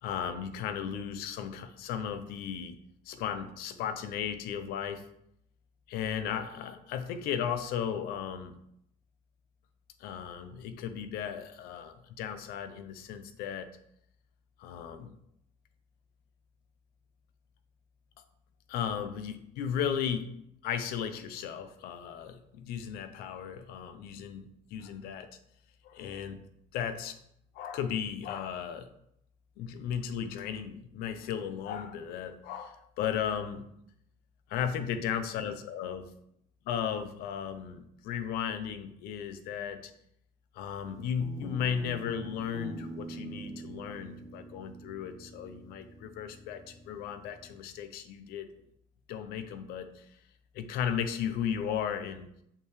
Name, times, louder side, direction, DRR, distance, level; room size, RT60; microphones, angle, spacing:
voice 1, 0.0-2.8 3.0-5.1 5.9-8.5 10.0-13.7 14.6-15.1 18.7-20.3 20.6-25.3 25.8-26.4 26.7-27.2 27.5-28.9 29.6-33.7 34.5-36.1 36.7-39.9 40.5-48.5 49.1-50.1 50.5-52.3, left 8 dB, 65° left, 10 dB, 0.7 m, -35 dB
Guitar, 41.2-47.8, right 2 dB, 20° left, 1.0 m, -46 dB
6.7 x 5.8 x 3.2 m, 0.74 s
cardioid pair, 150°, 17 cm